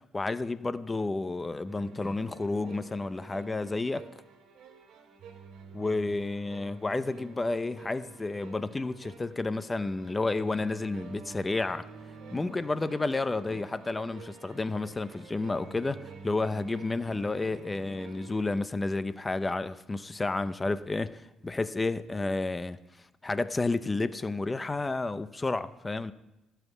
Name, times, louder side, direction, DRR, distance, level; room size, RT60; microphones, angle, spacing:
voice 1, 0.1-4.1 5.7-11.9 12.3-22.8 23.2-26.1, left 3 dB, 15° left, 0.6 m, -31 dB
sound 1, 1.7-18.6, right 4 dB, 70° right, 2.2 m, -49 dB
17.5 x 5.8 x 8.2 m
cardioid pair, 115°, 0 cm